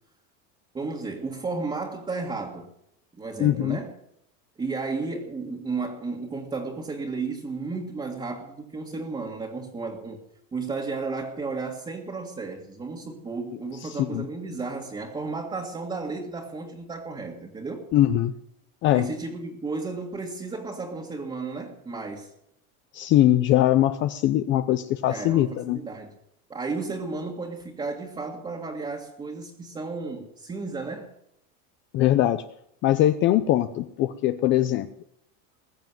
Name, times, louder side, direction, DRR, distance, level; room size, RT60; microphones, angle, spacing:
voice 1, 0.7-2.7 3.2-3.9 4.6-10.2 10.5-17.8 18.9-22.3 25.1-26.1 26.5-31.1, right 3 dB, 10° right, -1 dB, 1.9 m, -33 dB
voice 2, 3.4-3.8 13.8-14.3 17.9-18.3 18.8-19.1 22.9-25.8 31.9-32.4 32.8-34.9, left 13 dB, 30° left, 10 dB, 0.6 m, -21 dB
21.0 x 7.4 x 9.3 m, 0.75 s
supercardioid pair, 165°, 42 cm